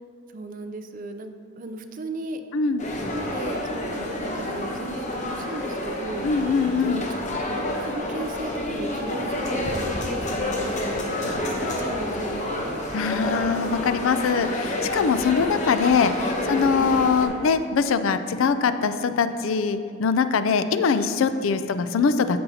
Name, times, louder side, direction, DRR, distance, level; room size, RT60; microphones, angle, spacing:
voice 1, 0.3-2.4 3.1-6.3 6.8-6.9 7.4-10.7 11.0-12.8 16.1-16.4 21.4-21.6, right 2 dB, 40° right, 8 dB, 0.5 m, -36 dB
sound 1, 2.8-17.3, left 1 dB, 35° left, 0.9 m, -29 dB
voice 2, 6.2-7.0 12.9-22.4, left 5 dB, 75° left, 11 dB, 0.4 m, -22 dB
14.0 x 5.4 x 2.8 m, 2.6 s
head